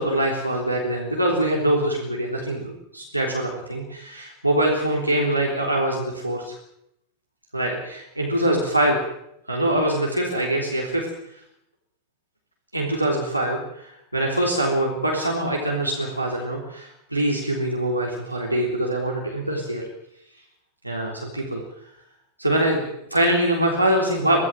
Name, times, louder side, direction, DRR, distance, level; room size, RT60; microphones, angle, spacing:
voice 1, 0.0-6.6 7.5-9.0 9.5-11.1 12.7-19.9 20.8-21.6 22.4-24.4, right 1 dB, 85° right, -1 dB, 3.6 m, -24 dB
24.0 x 16.5 x 7.5 m, 0.77 s
figure-of-eight pair, 90°, 0 cm